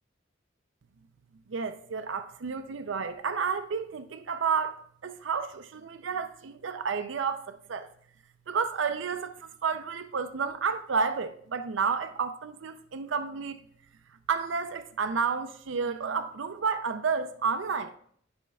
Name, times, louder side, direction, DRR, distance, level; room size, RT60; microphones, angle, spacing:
voice 1, 1.5-7.9 8.5-13.6 14.3-17.9, right 5 dB, 85° right, 0.5 m, -31 dB
12.5 x 5.2 x 2.3 m
head